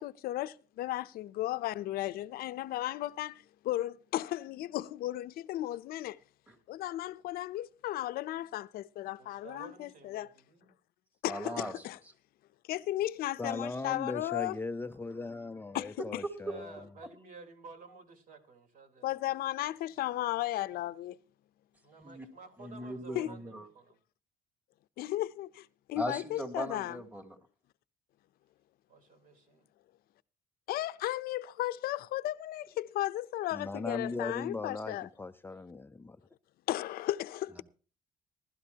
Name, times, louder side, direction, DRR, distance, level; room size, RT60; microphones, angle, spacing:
voice 1, 0.0-6.2 6.7-10.3 11.2-12.0 12.7-14.6 15.7-16.2 19.0-21.2 23.1-23.3 25.0-27.0 30.7-35.1 36.7-37.6, left 14 dB, 80° left, 0.6 m, -35 dB
voice 2, 9.2-10.7 14.8-15.8 16.5-19.3 21.8-24.0 28.9-29.7, right 3 dB, 60° right, 3.9 m, -53 dB
voice 3, 11.3-11.8 22.0-22.3 22.6-23.7 25.9-27.4, equal, 10° right, 2.6 m, -39 dB
voice 4, 13.4-16.9 33.5-36.2, left 3 dB, 15° left, 0.5 m, -38 dB
19.0 x 12.5 x 2.9 m
cardioid pair, 105°, 15 cm